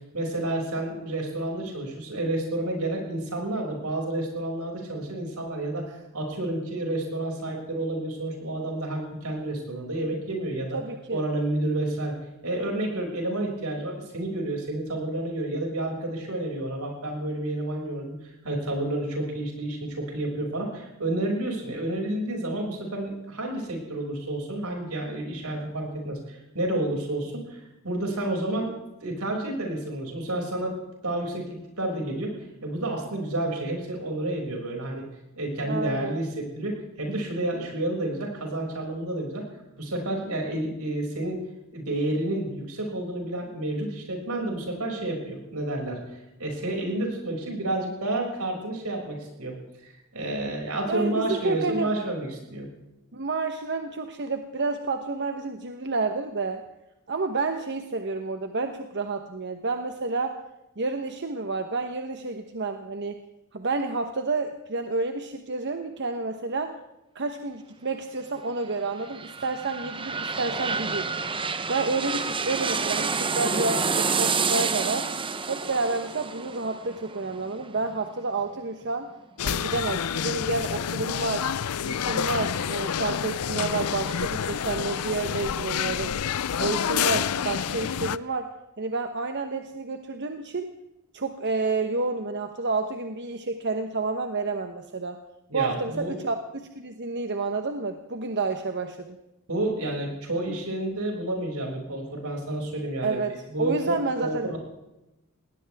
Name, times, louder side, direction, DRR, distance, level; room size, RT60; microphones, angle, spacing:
voice 1, 0.1-10.8 11.1-12.2 12.4-28.7 29.0-30.8 31.0-31.5 31.8-32.3 32.6-35.0 35.3-39.5 39.8-41.4 41.7-46.0 46.4-49.6 49.8-52.7 95.5-96.2 99.5-103.2 103.5-104.6, right 1 dB, 85° right, 0 dB, 6.5 m, -30 dB
voice 2, 10.7-11.2 35.6-36.2 50.9-51.9 53.1-56.6 57.1-60.4 60.8-63.2 63.5-66.8 67.1-71.1 71.7-75.1 75.5-79.1 79.4-81.5 81.9-86.1 86.6-90.7 91.1-95.2 95.5-99.2 103.0-104.6, right 3 dB, 50° right, 6 dB, 1.1 m, -30 dB
sound 1, 68.8-78.4 78.8-78.9, right 5 dB, 25° right, 0.8 m, -29 dB
sound 2, 79.4-88.2, left 8 dB, 85° left, 0.5 m, -28 dB
20.5 x 18.0 x 3.6 m, 0.95 s
head